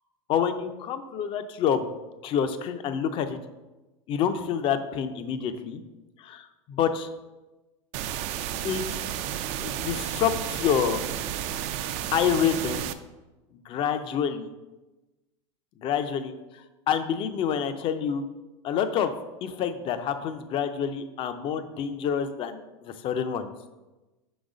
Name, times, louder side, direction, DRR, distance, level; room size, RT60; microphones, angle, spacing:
voice 1, 0.3-1.9 2.2-3.4 4.1-5.8 6.2-7.1 8.6-9.0 9.6-11.0 12.1-12.8 13.5-14.5 15.8-18.2 18.6-19.1 19.4-23.5, left 8 dB, 35° left, 10 dB, 0.5 m, -28 dB
sound 1, 7.9-12.9, right 10 dB, 45° right, 0.4 m, -32 dB
5.9 x 4.0 x 4.9 m, 1.1 s
supercardioid pair, 135°, 16 cm